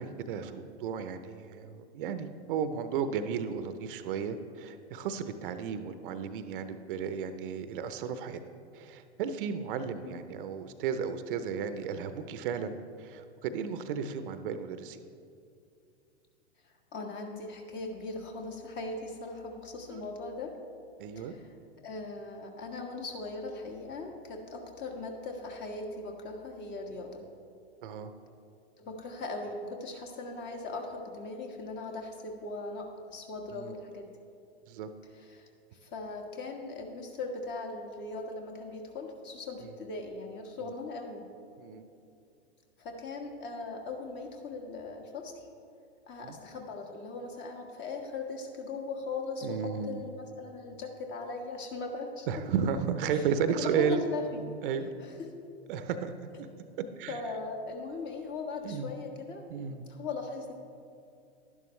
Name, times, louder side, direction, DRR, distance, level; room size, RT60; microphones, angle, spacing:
voice 1, 0.0-8.4 8.7-12.7 13.0-15.0 19.9-20.0 21.0-21.4 26.9-27.0 27.8-28.1 33.5-33.7 34.7-34.9 39.6-39.7 40.6-40.7 41.6-41.8 46.2-46.4 49.4-50.0 52.3-54.0 54.6-54.9 55.7-56.1 56.4-56.5 57.0-57.2 58.6-58.9 59.5-59.8, right 7 dB, 50° right, 10 dB, 0.7 m, -34 dB
voice 2, 16.6-20.6 21.1-21.5 21.8-27.2 28.8-34.1 35.1-41.2 42.8-45.3 46.1-52.3 53.1-53.2 53.6-54.4 55.0-55.3 57.1-60.5, left 3 dB, 35° left, 3 dB, 1.5 m, -39 dB
11.5 x 11.0 x 3.2 m, 2.5 s
hypercardioid pair, 115°, 33 cm